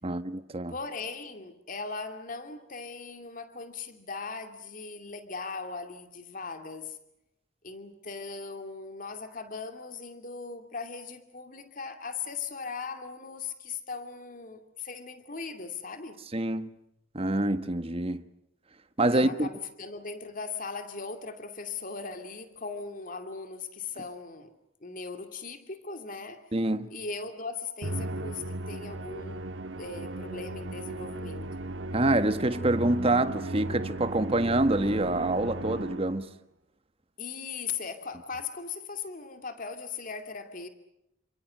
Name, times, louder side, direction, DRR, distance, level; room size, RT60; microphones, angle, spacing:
voice 1, 0.0-0.7 16.3-16.7 17.1-18.2 19.0-19.5 26.5-26.9 31.9-36.3, right 2 dB, 30° right, 1.5 m, -26 dB
voice 2, 0.7-7.0 7.6-16.2 19.0-24.5 24.8-26.5 26.9-29.4 29.8-31.5 37.2-40.7, left 4 dB, 45° left, 2.6 m, -39 dB
Musical instrument, 27.8-36.3, right 2 dB, 75° right, 1.6 m, -36 dB
30.0 x 26.5 x 6.4 m
head